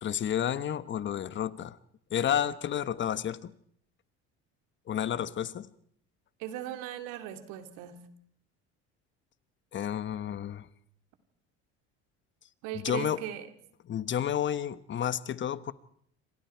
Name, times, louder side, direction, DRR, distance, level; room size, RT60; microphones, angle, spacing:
voice 1, 0.0-1.8 2.1-3.5 4.9-5.7 9.7-10.7 12.7-13.2 13.9-15.7, left 9 dB, 40° left, 1.2 m, -31 dB
voice 2, 6.4-8.0 12.6-13.5, right 11 dB, 80° right, 2.9 m, -38 dB
28.0 x 25.5 x 4.6 m
supercardioid pair, 105°, 30 cm